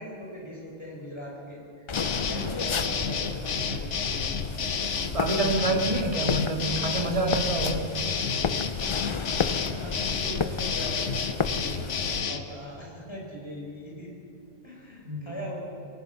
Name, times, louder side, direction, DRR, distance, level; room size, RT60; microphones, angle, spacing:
voice 1, 0.0-3.9 8.7-14.1 14.6-15.6, equal, 20° left, -3 dB, 5.3 m, -40 dB
sound 1, 1.9-12.4, left 5 dB, 75° left, 1.5 m, -30 dB
sound 2, 1.9-12.2, left 5 dB, 55° left, 0.3 m, -33 dB
Sailplane Liftoff, 2.2-12.2, left 1 dB, 70° right, 6.2 m, -44 dB
voice 2, 5.1-7.8 15.0-15.3, right 2 dB, 30° right, 1 dB, 2.5 m, -27 dB
27.5 x 18.0 x 5.9 m, 2.8 s
omnidirectional pair, 1.2 m